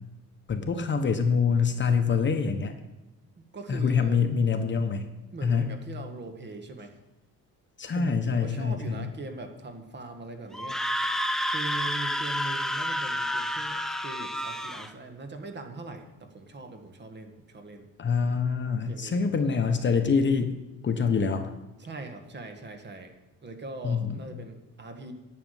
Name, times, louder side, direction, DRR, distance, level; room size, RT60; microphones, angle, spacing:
voice 1, 0.5-2.7 3.7-5.1 5.4-5.7 7.8-9.0 18.0-20.5 20.8-21.5 23.8-24.1, left 5 dB, 35° left, 7 dB, 1.1 m, -25 dB
voice 2, 3.4-4.2 5.3-6.9 7.9-10.9 11.5-17.9 18.9-19.3 21.8-23.1 23.4-25.1, right 3 dB, 30° right, 5 dB, 1.7 m, -41 dB
Screaming, 10.5-14.9, equal, ahead, 0.6 m, -30 dB
11.0 x 6.8 x 9.2 m, 1.0 s
cardioid pair, 135°, 34 cm